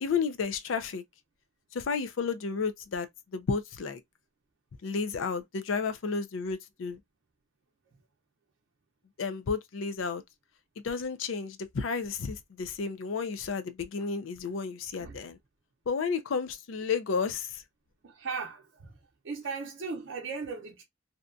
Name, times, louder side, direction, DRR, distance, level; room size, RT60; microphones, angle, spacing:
voice 1, 0.0-1.0 1.7-4.0 4.8-7.0 9.2-10.2 10.8-15.4 15.9-17.6, left 5 dB, 75° left, 0.4 m, -32 dB
voice 2, 18.0-20.8, right 4 dB, 65° right, 0.6 m, -38 dB
2.7 x 2.2 x 2.4 m
head